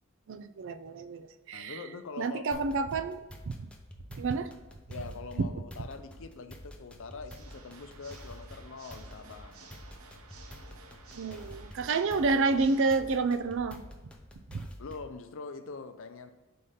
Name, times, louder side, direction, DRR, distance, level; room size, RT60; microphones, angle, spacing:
voice 1, 0.3-1.8 2.2-3.7 4.1-4.5 11.1-13.8 14.5-14.7, right 3 dB, 60° right, 11 dB, 0.4 m, -29 dB
voice 2, 1.5-2.7 4.9-9.7 14.8-16.3, left 4 dB, 65° left, 9 dB, 0.6 m, -44 dB
sound 1, 2.5-15.2, equal, 5° left, 0.6 m, -49 dB
Water / Mechanisms, 7.2-13.2, right 3 dB, 90° right, 0.8 m, -53 dB
5.5 x 4.3 x 5.0 m, 1.1 s
head